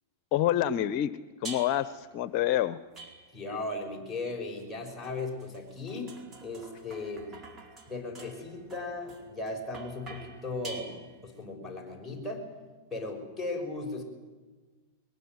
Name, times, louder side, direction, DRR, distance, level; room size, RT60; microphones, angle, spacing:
voice 1, 0.3-1.1 1.4-2.8, left 12 dB, 50° left, 14 dB, 0.9 m, -27 dB
sound 1, 1.4-2.0 2.9-3.6 4.6-11.4, right 3 dB, 25° right, 4.6 m, -47 dB
voice 2, 3.3-7.3 7.9-12.5 12.9-14.0, left 2 dB, 5° left, -2 dB, 6.8 m, -37 dB
22.5 x 19.5 x 9.6 m, 1.3 s
hypercardioid pair, 110°, 0 cm